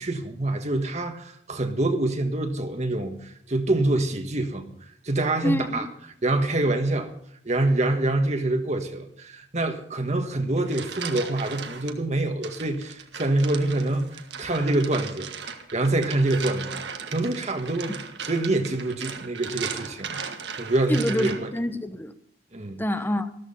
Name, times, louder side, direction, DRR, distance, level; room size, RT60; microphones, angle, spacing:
voice 1, 0.0-4.7 5.0-5.9 6.2-7.1 7.4-15.3 15.7-16.8 17.1-20.2 20.6-21.5 22.5-22.8, right 2 dB, 40° right, 5 dB, 1.4 m, -26 dB
voice 2, 5.4-5.9 20.9-22.1 22.8-23.3, left 1 dB, 10° left, 10 dB, 0.9 m, -26 dB
sound 1, 10.4-11.9 12.4-21.6, right 6 dB, 70° right, 1.5 m, -37 dB
13.5 x 13.5 x 5.5 m, 0.66 s
head